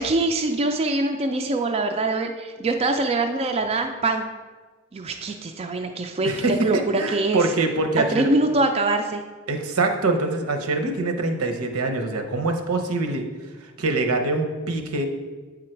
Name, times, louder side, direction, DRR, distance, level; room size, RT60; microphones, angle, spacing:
voice 1, 0.0-4.3 4.9-7.4 8.0-9.2, right 2 dB, 25° right, 4 dB, 0.3 m, -24 dB
voice 2, 6.2-8.4 9.5-13.2 13.8-15.1, right 2 dB, 80° right, 5 dB, 0.8 m, -24 dB
8.2 x 3.9 x 4.4 m, 1.4 s
head